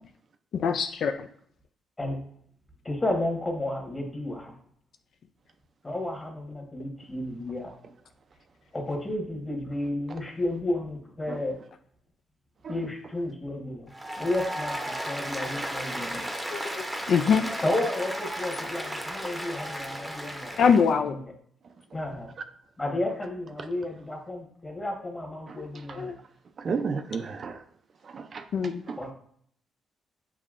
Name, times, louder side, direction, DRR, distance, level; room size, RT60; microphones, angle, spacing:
voice 1, 0.5-1.3 16.5-17.5 20.6-21.2 25.6-25.7 26.0-26.2 28.5-28.8, left 6 dB, 65° left, 7 dB, 0.3 m, -24 dB
voice 2, 2.8-4.5 5.8-7.7 8.7-11.6 12.7-13.9 14.2-16.2 17.6-20.6 20.8-21.2 21.9-22.3 22.8-26.1 26.6-26.8 28.9-29.1, left 1 dB, 20° left, 1 dB, 1.2 m, -32 dB
Applause, 13.9-20.9, right 1 dB, 10° right, 0.7 m, -34 dB
voice 3, 26.6-27.6 28.0-28.5 28.9-29.0, right 5 dB, 50° right, 8 dB, 0.4 m, -33 dB
6.9 x 2.7 x 2.4 m, 0.63 s
cardioid pair, 90°, 0 cm